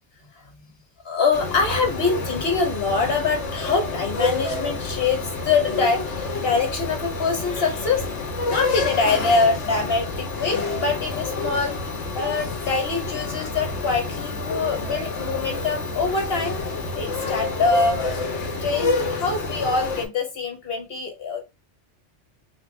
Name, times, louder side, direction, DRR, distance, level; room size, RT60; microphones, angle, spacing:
voice 1, 1.0-8.1 8.5-11.8 12.1-16.5 16.9-18.0 18.6-21.4, left 4 dB, 60° left, 1.5 m, -24 dB
sound 1, 1.3-20.1, left 3 dB, 80° left, 1.3 m, -28 dB
4.0 x 2.5 x 3.3 m
omnidirectional pair, 1.2 m